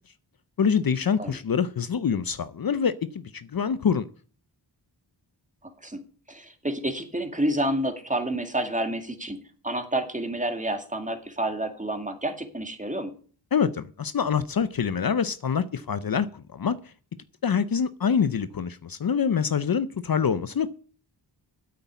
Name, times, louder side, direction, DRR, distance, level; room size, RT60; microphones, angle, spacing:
voice 1, 0.6-4.1 13.5-16.9 17.4-20.7, left 7 dB, 55° left, 0.6 m, -25 dB
voice 2, 5.6-6.0 6.3-9.4 9.6-13.1, right 1 dB, 15° right, 2.2 m, -29 dB
9.4 x 8.5 x 8.2 m
wide cardioid pair, 80°, 44 cm